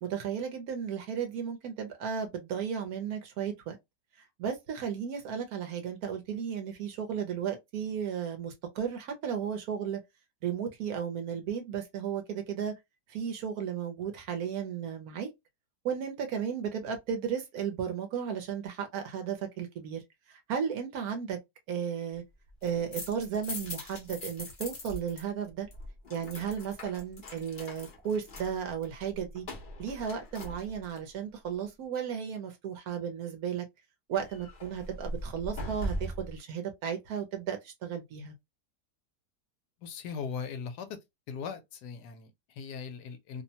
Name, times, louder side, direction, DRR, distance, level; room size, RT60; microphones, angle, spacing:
voice 1, 0.0-3.8 4.2-10.0 10.4-12.7 13.1-15.3 15.8-21.4 21.7-22.2 22.6-25.7 26.1-29.5 29.8-33.6 34.1-38.3, right 7 dB, 70° right, 1.0 m, -34 dB
sound 1, 22.5-25.2 25.5-31.1 34.1-36.4, equal, 50° left, 0.6 m, -41 dB
voice 2, 39.8-40.9 41.3-43.4, left 6 dB, 75° left, 1.1 m, -39 dB
2.9 x 2.1 x 2.7 m
omnidirectional pair, 1.8 m